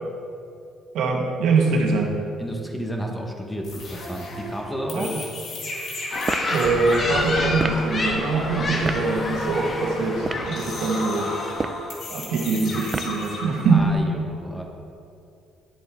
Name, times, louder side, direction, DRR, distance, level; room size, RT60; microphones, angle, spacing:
voice 1, 0.9-2.1 4.9-5.2 6.5-11.3 12.1-13.9, right 3 dB, 75° right, 0 dB, 1.5 m, -23 dB
voice 2, 2.4-5.1 13.7-14.6, equal, 10° left, 2 dB, 1.1 m, -31 dB
sound 1, 3.6-13.9, left 2 dB, 60° left, 2.2 m, -35 dB
sound 2, 6.1-11.5, left 2 dB, 35° left, 1.4 m, -29 dB
sound 3, 6.2-6.5 7.6-7.8 8.8-9.0 10.1-10.5 11.5-11.9 12.9-13.2, right 4 dB, 30° right, 0.4 m, -28 dB
10.5 x 7.7 x 3.6 m, 2.6 s
cardioid pair, 100°, 0 cm